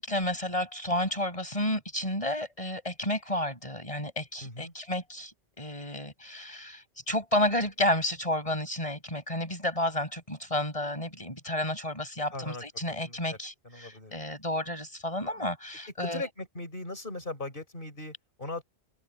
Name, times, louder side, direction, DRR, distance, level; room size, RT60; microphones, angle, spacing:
voice 1, 0.0-16.3, left 1 dB, 30° left, 7.4 m, -31 dB
voice 2, 4.4-4.7 12.3-13.4 13.6-14.1 16.0-18.6, left 2 dB, 55° left, 4.5 m, -39 dB
open air
omnidirectional pair, 1.1 m